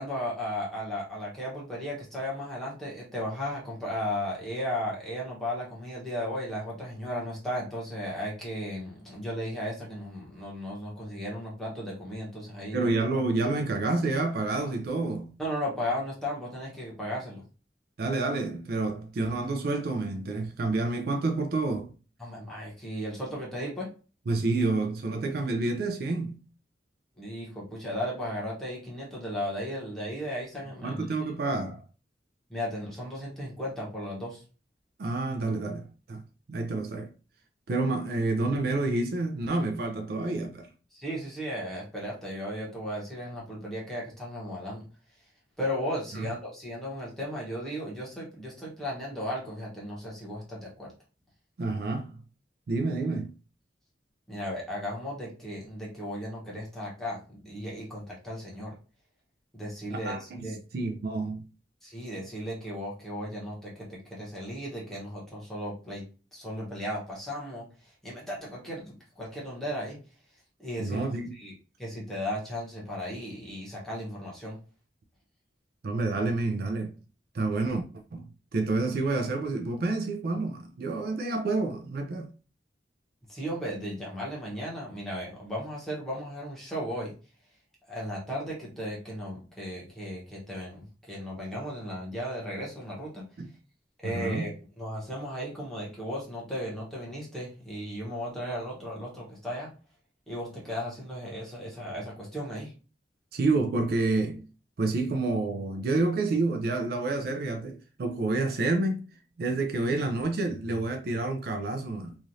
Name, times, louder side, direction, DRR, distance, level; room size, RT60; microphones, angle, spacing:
voice 1, 0.0-12.9 15.4-17.4 22.2-23.9 27.2-31.0 32.5-34.4 40.9-44.8 45.6-50.9 54.3-58.7 59.5-60.6 61.8-66.0 66.3-67.6 68.0-70.0 70.6-71.0 71.3-71.5 71.8-74.6 83.3-87.1 87.9-93.2 94.0-99.7 100.3-102.7, equal, ahead, 1.0 m, -35 dB
voice 2, 12.7-15.3 18.0-21.9 24.3-26.4 30.8-31.8 35.0-36.2 36.5-37.1 37.7-40.7 46.1-46.3 51.6-52.2 52.7-53.3 59.9-61.4 70.8-71.3 75.8-76.9 77.3-77.8 78.1-82.3 93.4-93.5 94.0-94.5 103.3-104.5 104.8-109.0 109.4-112.2, right 3 dB, 60° right, 0.4 m, -29 dB
3.1 x 2.4 x 2.6 m
head